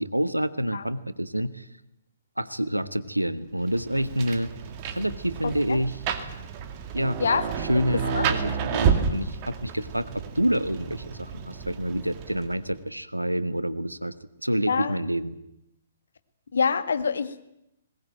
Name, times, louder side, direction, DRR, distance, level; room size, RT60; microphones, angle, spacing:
voice 1, 0.0-1.7 2.4-4.5 4.9-6.0 6.9-7.2 7.6-14.1 14.4-15.4, equal, 90° right, 14 dB, 1.3 m, -28 dB
Rain, 3.7-12.7, right 7 dB, 35° right, 2.4 m, -30 dB
voice 2, 5.4-5.8 7.2-7.4 7.7-7.8 8.1-8.2 14.7-15.0 16.5-17.5, left 5 dB, 65° left, 11 dB, 1.8 m, -26 dB
21.0 x 19.5 x 9.1 m, 0.84 s
figure-of-eight pair, 125°, 0 cm